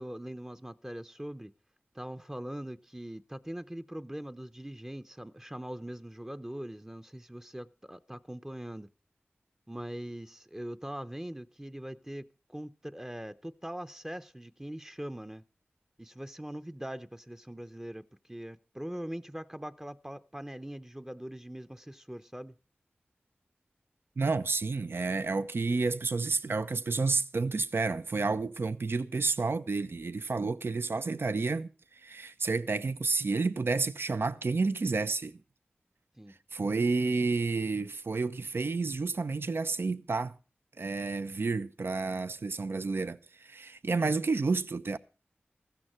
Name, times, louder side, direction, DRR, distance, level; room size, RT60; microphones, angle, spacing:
voice 1, 0.0-1.5 1.9-8.9 9.7-15.4 16.0-22.6 36.2-36.4, right 1 dB, 10° right, 0.7 m, -42 dB
voice 2, 24.2-35.4 36.5-40.3 40.8-45.0, right 3 dB, 70° right, 0.7 m, -30 dB
15.0 x 13.0 x 4.3 m
cardioid pair, 45°, 4 cm